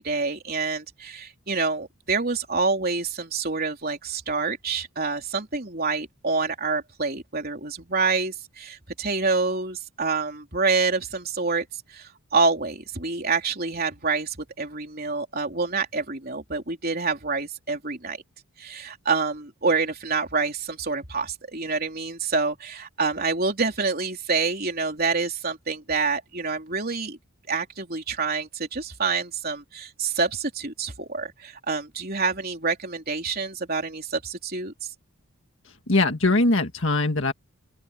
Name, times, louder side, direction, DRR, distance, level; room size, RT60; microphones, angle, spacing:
voice 1, 0.0-18.2 18.6-27.2 27.5-34.9, right 4 dB, 45° right, 3.7 m, -27 dB
voice 2, 35.7-37.3, left 2 dB, 60° left, 1.9 m, -22 dB
open air
head